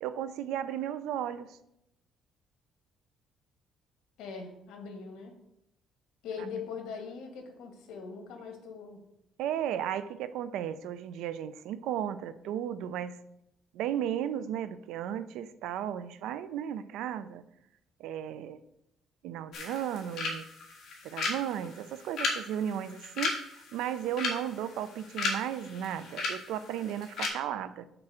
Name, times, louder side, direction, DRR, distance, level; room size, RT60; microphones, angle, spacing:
voice 1, 0.0-1.6 9.4-13.2 13.7-17.4 18.0-18.6 19.2-20.5 21.0-27.9, right 10 dB, 85° right, 13 dB, 0.4 m, -35 dB
voice 2, 4.2-5.4 6.2-9.0, left 5 dB, 85° left, 4 dB, 1.6 m, -41 dB
sound 1, 19.5-27.3, left 3 dB, 50° left, 1.7 m, -36 dB
6.0 x 4.4 x 6.3 m, 0.81 s
cardioid pair, 175°, 0 cm